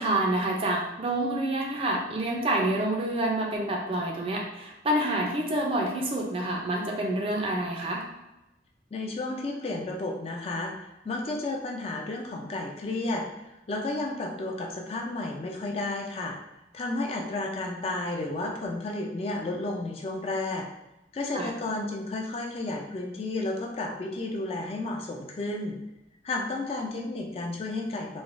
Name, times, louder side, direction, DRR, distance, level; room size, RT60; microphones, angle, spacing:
voice 1, 0.0-8.1 21.3-21.5, right 1 dB, 30° right, 0 dB, 0.4 m, -28 dB
voice 2, 8.9-13.2 13.7-16.4 16.7-20.7 21.1-25.8 26.2-28.2, left 2 dB, 35° left, 0 dB, 0.3 m, -32 dB
3.1 x 2.2 x 2.5 m, 0.95 s
head